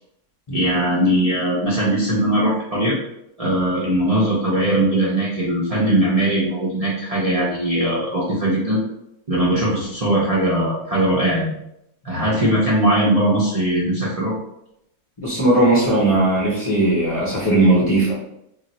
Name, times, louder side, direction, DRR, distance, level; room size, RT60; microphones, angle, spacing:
voice 1, 0.5-3.0 3.4-8.8 9.3-11.5 12.0-14.3, right 1 dB, 40° right, -7 dB, 0.5 m, -20 dB
voice 2, 15.2-18.1, right 2 dB, 25° left, -7 dB, 0.7 m, -17 dB
2.5 x 2.4 x 4.0 m, 0.80 s
omnidirectional pair, 1.7 m